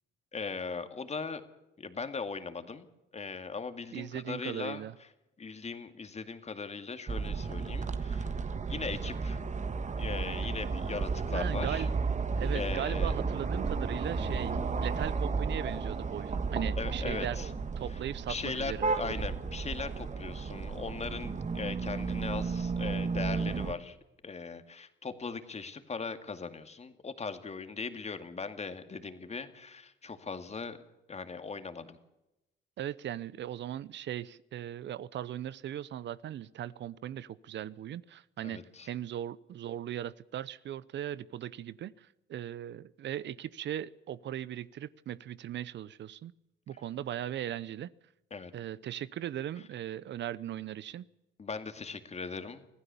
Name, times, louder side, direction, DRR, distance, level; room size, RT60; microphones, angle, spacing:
voice 1, 0.3-1.4 1.8-2.9 3.1-4.8 5.4-8.4 8.7-9.4 10.0-11.9 12.5-13.1 16.8-17.5 17.9-18.0 18.3-24.0 24.2-30.8 31.1-32.0 38.4-38.9 48.3-48.5 51.4-52.7, left 4 dB, 35° left, 9 dB, 2.2 m, -39 dB
voice 2, 3.9-4.9 11.3-11.9 12.3-17.4 17.8-19.2 32.8-46.3 46.7-47.9 48.5-51.1, right 11 dB, 65° right, 19 dB, 0.7 m, -38 dB
sound 1, 7.1-23.7, right 4 dB, 35° right, 1.5 m, -33 dB
25.0 x 15.5 x 7.0 m, 0.91 s
cardioid pair, 90°, 20 cm